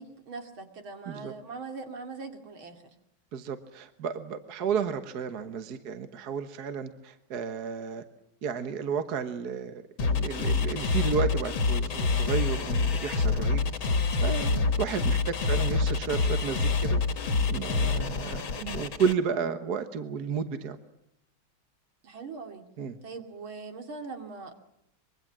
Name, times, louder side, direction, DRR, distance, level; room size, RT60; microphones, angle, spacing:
voice 1, 0.0-2.8 14.4-14.7 15.5-15.8 22.0-22.7 23.0-24.6, right 4 dB, 75° right, 5 dB, 3.4 m, -41 dB
voice 2, 3.3-8.0 8.4-9.7 10.0-13.6 14.2-14.5 14.8-17.0 17.3-20.8 22.8-23.0, right 6 dB, 55° right, 9 dB, 1.7 m, -32 dB
sound 1, 10.0-19.1, left 4 dB, 70° left, 2.6 m, -27 dB
25.0 x 23.0 x 7.4 m, 0.81 s
omnidirectional pair, 2.2 m